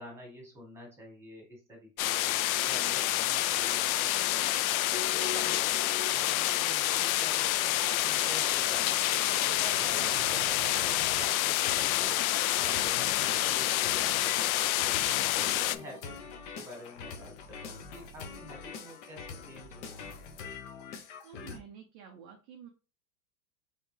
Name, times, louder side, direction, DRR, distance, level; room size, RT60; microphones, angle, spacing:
voice 1, 0.0-2.4 2.7-12.2 12.5-15.1 15.3-16.2 16.6-20.1, equal, 5° right, -1 dB, 1.7 m, -48 dB
sound 1, 2.0-15.8, left 15 dB, 70° left, 0.5 m, -28 dB
sound 2, 4.9-6.6 11.7-21.6, left 6 dB, 55° left, 1.0 m, -44 dB
sound 3, 5.0-11.3, right 8 dB, 45° right, 0.8 m, -47 dB
voice 2, 21.2-22.7, right 8 dB, 25° right, 1 dB, 0.4 m, -50 dB
4.3 x 3.6 x 3.2 m, 0.33 s
supercardioid pair, 155°, 44 cm